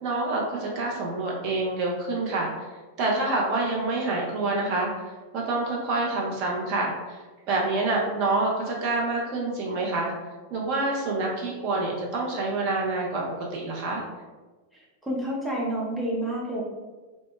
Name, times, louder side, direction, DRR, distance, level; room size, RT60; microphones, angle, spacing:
voice 1, 0.0-2.6 3.0-4.9 5.3-7.2 7.5-10.1 10.5-13.2 13.5-14.0, right 2 dB, 50° right, -2 dB, 0.6 m, -27 dB
voice 2, 14.7-16.6, right 1 dB, ahead, -5 dB, 0.7 m, -29 dB
2.1 x 2.0 x 3.0 m, 1.3 s
hypercardioid pair, 100°, 0 cm